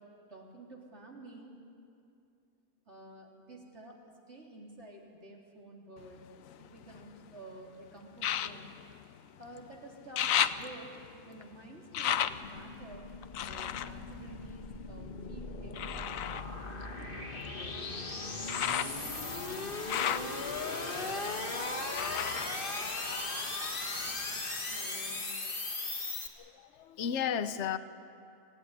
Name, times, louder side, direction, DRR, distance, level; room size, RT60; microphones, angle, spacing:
voice 1, 0.0-1.6 2.9-4.0 4.3-6.3 6.6-8.8 9.4-11.0 11.2-13.1 13.5-16.1 16.6-18.0 24.6-25.4, right 1 dB, 55° right, -2 dB, 3.9 m, -51 dB
sound 1, 6.0-7.3 8.2-9.7 9.9-15.1 15.7-23.6 23.9-24.7 25.2-25.3, left 10 dB, 85° left, 1.1 m, -36 dB
sound 2, 12.4-26.3, left 3 dB, 40° left, 1.9 m, -38 dB
voice 2, 26.4-27.8, left 8 dB, 65° left, 12 dB, 1.1 m, -34 dB
26.0 x 16.0 x 10.0 m, 2.5 s
omnidirectional pair, 1.4 m